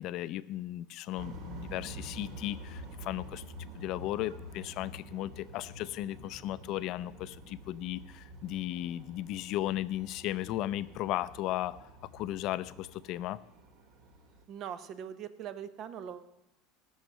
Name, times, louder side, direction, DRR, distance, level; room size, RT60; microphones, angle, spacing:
voice 1, 0.0-3.4 3.7-11.9 12.1-13.4, left 14 dB, 50° left, 16 dB, 0.5 m, -36 dB
sound 1, 1.2-14.4, equal, 60° right, 2.5 m, -48 dB
voice 2, 14.5-16.2, right 9 dB, 40° right, 12 dB, 0.8 m, -41 dB
17.0 x 6.5 x 7.6 m, 0.92 s
supercardioid pair, 145°, 0 cm